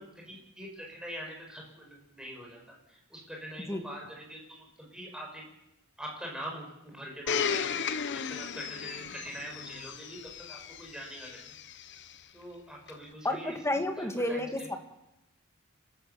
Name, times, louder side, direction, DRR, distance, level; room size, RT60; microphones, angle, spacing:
voice 1, 0.0-5.4 6.0-7.8 8.3-11.4 12.3-13.6 14.0-14.7, equal, 5° right, -1 dB, 6.3 m, -44 dB
Domestic sounds home sounds, 7.3-12.1 12.9-13.0, left 7 dB, 55° left, 0.9 m, -35 dB
voice 2, 13.2-14.8, left 1 dB, 15° left, 5 dB, 2.0 m, -31 dB
30.0 x 13.5 x 7.1 m, 0.92 s
head